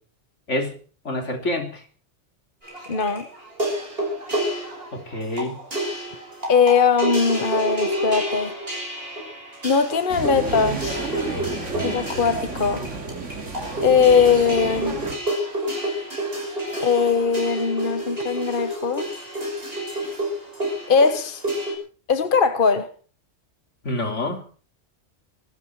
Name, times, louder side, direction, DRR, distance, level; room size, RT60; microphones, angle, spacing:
voice 1, 1.0-1.8 4.9-5.6 23.8-24.4, left 1 dB, 80° left, 5 dB, 3.4 m, -27 dB
sound 1, 2.6-21.7, right 1 dB, 50° right, 6.5 m, -29 dB
voice 2, 2.9-3.2 6.5-8.5 9.6-11.0 11.8-12.8 13.8-15.0 16.8-19.1 20.9-21.4 22.1-22.9, left 5 dB, 45° left, 10 dB, 1.3 m, -20 dB
sound 2, 10.1-15.2, right 3 dB, 85° right, 2.7 m, -31 dB
24.0 x 13.0 x 4.7 m, 0.41 s
omnidirectional pair, 1.2 m